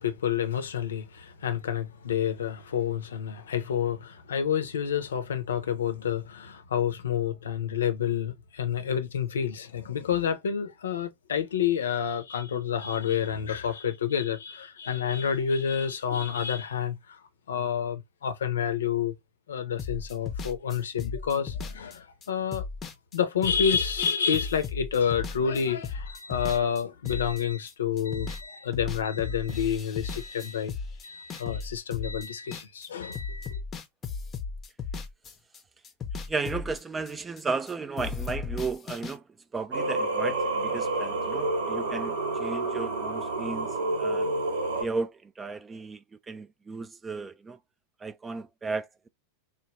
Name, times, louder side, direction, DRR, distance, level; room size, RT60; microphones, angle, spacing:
voice 1, 0.0-17.2 17.5-19.1 19.5-22.6 23.1-30.7 31.0-33.6, left 8 dB, 65° left, 0.6 m, -29 dB
sound 1, 19.8-27.7 28.0-28.5 28.7-32.9 33.1-35.6 35.8-37.7 38.0-39.1, left 5 dB, 25° left, 0.6 m, -36 dB
voice 2, 36.1-39.2 39.5-44.3 44.7-47.6 48.0-49.1, right 4 dB, 15° right, 0.3 m, -34 dB
Singing, 39.7-44.8, right 2 dB, 55° right, 0.8 m, -29 dB
3.2 x 2.3 x 3.1 m
figure-of-eight pair, 90°, 0 cm